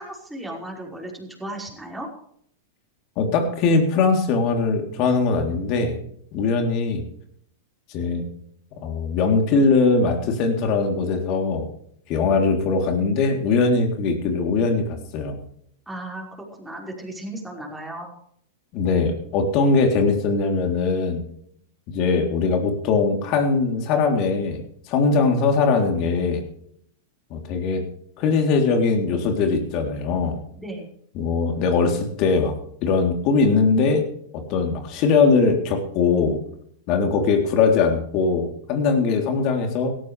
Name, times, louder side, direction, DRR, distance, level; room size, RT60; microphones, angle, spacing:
voice 1, 0.0-2.1 15.9-16.3 16.6-18.1 30.6-30.9, right 1 dB, 5° right, -2 dB, 5.3 m, -35 dB
voice 2, 3.2-6.0 6.3-7.0 7.9-8.3 8.8-11.7 12.1-15.4 18.7-21.2 21.9-24.6 24.9-26.4 27.3-27.9 28.2-30.4 31.2-32.6 32.8-34.1 34.3-36.4 36.9-40.0, left 4 dB, 45° left, 4 dB, 3.5 m, -21 dB
17.0 x 13.5 x 3.4 m, 0.67 s
hypercardioid pair, 110°, 0 cm